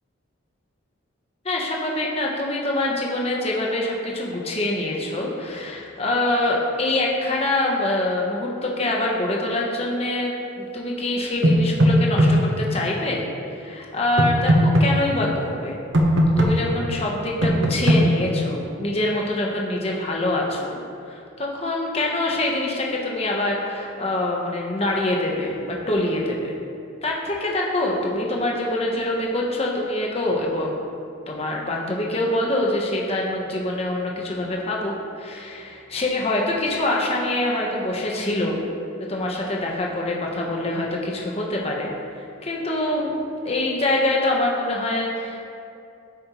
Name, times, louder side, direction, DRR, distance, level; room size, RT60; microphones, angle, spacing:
voice 1, 1.4-15.8 16.4-20.8 21.1-26.5 27.0-30.8 31.3-38.6 39.1-41.9 42.4-43.2 43.4-45.4, left 1 dB, 30° left, -2 dB, 1.0 m, -25 dB
sound 1, 11.4-12.3 14.2-14.9 15.9-16.5 17.4-18.0, equal, 70° right, 1.0 m, -16 dB
13.0 x 5.3 x 3.0 m, 2.5 s
head